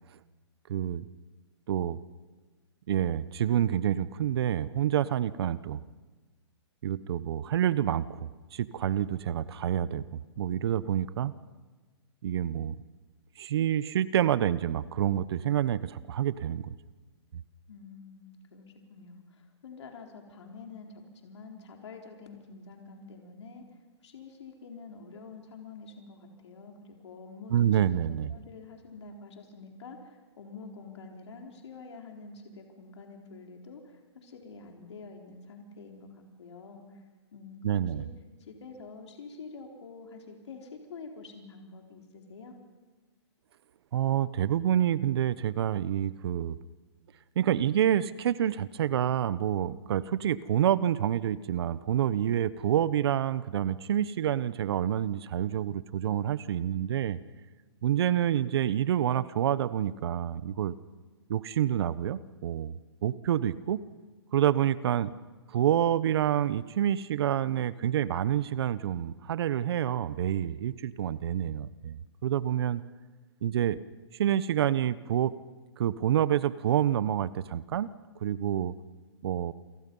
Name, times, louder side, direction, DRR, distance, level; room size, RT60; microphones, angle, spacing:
voice 1, 0.7-1.1 1.7-2.0 2.9-5.8 6.8-8.0 8.5-11.3 12.2-12.8 13.4-16.7 27.5-28.3 37.6-38.1 43.9-46.5 47.4-57.2 57.8-60.8 61.3-62.7 63.0-63.8 64.3-65.1 65.5-72.8 73.4-73.8 74.1-75.3 75.8-77.9 78.2-78.7 79.2-79.5, right 10 dB, 60° right, 17 dB, 0.9 m, -28 dB
voice 2, 17.7-23.6 24.0-27.5 28.3-37.0 37.3-38.1 38.4-42.5, left 4 dB, 75° left, 2 dB, 4.1 m, -47 dB
28.5 x 24.5 x 5.5 m, 1.3 s
hypercardioid pair, 145°, 15 cm